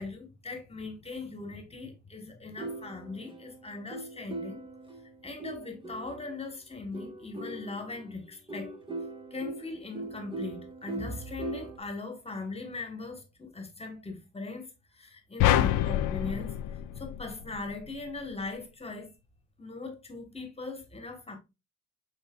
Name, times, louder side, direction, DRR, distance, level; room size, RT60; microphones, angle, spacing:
voice 1, 0.0-4.6 5.2-8.7 9.3-16.6 17.0-19.1 19.6-21.4, left 3 dB, 20° left, 1.3 m, -40 dB
sound 1, 2.6-6.4 6.9-11.8, right 2 dB, 15° right, 1.0 m, -41 dB
sound 2, 15.4-17.8, left 12 dB, 85° left, 0.5 m, -27 dB
5.6 x 3.9 x 2.3 m
cardioid pair, 90°, 30 cm